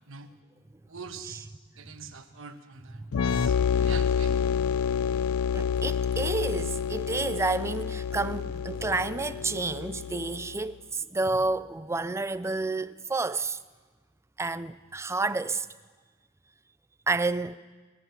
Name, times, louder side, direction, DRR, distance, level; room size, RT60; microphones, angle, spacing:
voice 1, 0.9-1.5 1.8-3.0 3.3-4.4, right 5 dB, 70° right, 1.2 m, -43 dB
voice 2, 3.0-3.4 5.5-13.6 14.4-15.7 17.1-17.6, right 3 dB, 15° right, 0.4 m, -30 dB
sound 1, 3.1-10.6, left 7 dB, 80° left, 0.4 m, -28 dB
18.0 x 14.0 x 5.7 m
head